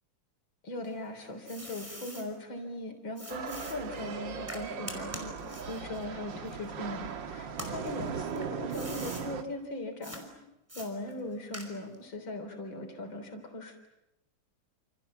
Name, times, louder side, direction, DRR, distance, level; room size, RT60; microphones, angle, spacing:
voice 1, 0.6-10.3 10.7-13.9, left 1 dB, 85° left, 4 dB, 4.3 m, -39 dB
sound 1, 0.8-2.3 3.2-7.1 7.5-9.3 10.0-10.2 10.7-12.0, equal, 5° right, 5.2 m, -45 dB
sound 2, 3.3-9.4, right 6 dB, 75° right, 2.1 m, -38 dB
29.0 x 28.5 x 7.3 m, 0.88 s
omnidirectional pair, 2.1 m